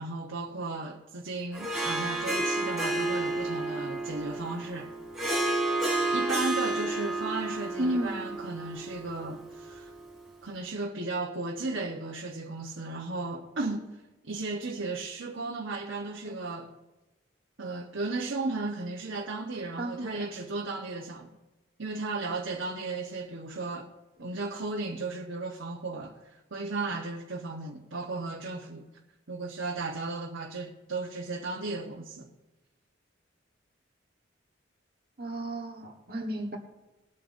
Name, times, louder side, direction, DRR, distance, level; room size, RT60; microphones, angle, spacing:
voice 1, 0.0-4.9 6.1-9.9 10.4-13.9 14.2-16.7 17.6-21.3 21.8-23.9 24.2-28.9 29.3-32.3, right 3 dB, 85° right, 1.2 m, -35 dB
Harp, 1.5-10.2, right 2 dB, ahead, 3.8 m, -31 dB
voice 2, 7.8-8.2 16.2-16.3 19.8-20.3 35.2-36.6, right 1 dB, 50° right, 1.5 m, -33 dB
21.0 x 8.7 x 2.7 m
head